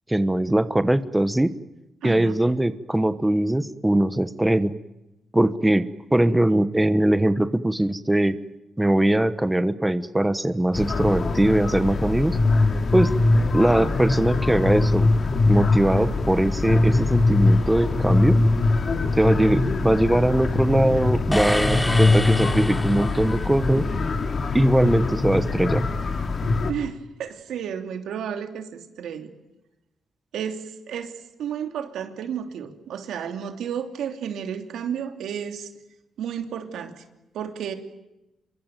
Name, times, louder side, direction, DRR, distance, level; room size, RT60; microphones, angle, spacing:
voice 1, 0.1-1.5 2.0-4.7 5.3-8.4 8.8-12.4 12.9-13.1 13.5-15.1 15.5-18.4 19.2-23.8 24.5-25.8, right 1 dB, 10° right, 12 dB, 1.2 m, -21 dB
voice 2, 2.0-2.3 26.7-29.3 30.3-31.1 31.4-35.7 36.2-37.0 37.3-37.7, right 8 dB, 85° right, 6 dB, 3.0 m, -32 dB
sound 1, 10.7-26.7, left 2 dB, 50° left, 3.3 m, -22 dB
sound 2, 21.3-23.5, left 1 dB, 10° left, 3.5 m, -28 dB
27.0 x 23.0 x 9.3 m, 0.96 s
cardioid pair, 85°, 0 cm